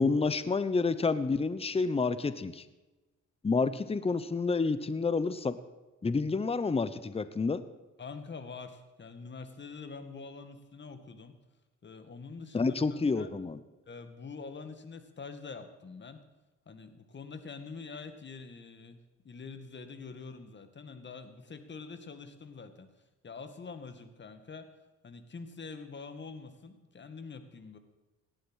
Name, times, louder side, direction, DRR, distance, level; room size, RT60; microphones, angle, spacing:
voice 1, 0.0-2.6 3.4-5.6 6.0-7.6 12.5-13.6, left 4 dB, 20° left, 14 dB, 0.9 m, -29 dB
voice 2, 8.0-11.3 11.8-13.3 13.9-16.2 16.7-19.0 19.2-22.9 23.2-24.7 25.0-27.8, left 4 dB, 35° left, 9 dB, 2.1 m, -45 dB
17.5 x 11.5 x 6.4 m, 1.1 s
cardioid pair, 90°, 30 cm